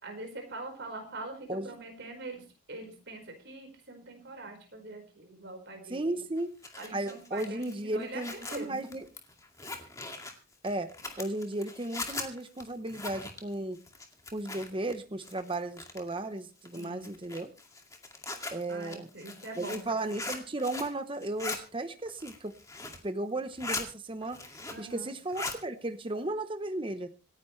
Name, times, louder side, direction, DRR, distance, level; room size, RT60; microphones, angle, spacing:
voice 1, 0.0-6.2 6.8-8.9 16.7-17.1 18.5-20.1 24.7-25.1, right 2 dB, 50° right, 3 dB, 4.9 m, -43 dB
voice 2, 5.9-6.5 6.9-9.0 10.6-10.9 11.2-13.8 14.3-17.5 18.5-19.1 19.6-22.5 23.0-24.4 24.8-27.1, right 2 dB, 25° right, 9 dB, 0.9 m, -35 dB
Zipper (clothing), 6.4-14.9 15.2-16.2 16.7-21.0 21.2-21.6 22.1-23.1 23.4-23.9 24.2-24.9 25.2-25.6, left 3 dB, 15° left, 2.2 m, -40 dB
27.0 x 10.0 x 3.2 m, 0.34 s
head